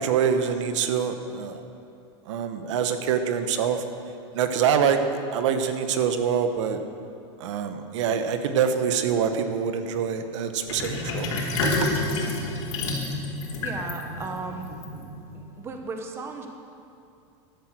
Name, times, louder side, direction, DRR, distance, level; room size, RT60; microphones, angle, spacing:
voice 1, 0.0-1.6 2.3-3.8 4.3-5.0 5.3-6.8 7.4-11.3 11.6-11.7, right 7 dB, 70° right, 8 dB, 1.2 m, -25 dB
Sink (filling or washing), 10.7-15.4, left 2 dB, 85° left, 3.6 m, -29 dB
voice 2, 13.6-14.7 15.0-16.5, right 4 dB, 15° right, 4 dB, 0.9 m, -36 dB
13.5 x 12.0 x 6.3 m, 2.6 s
supercardioid pair, 170°, 16 cm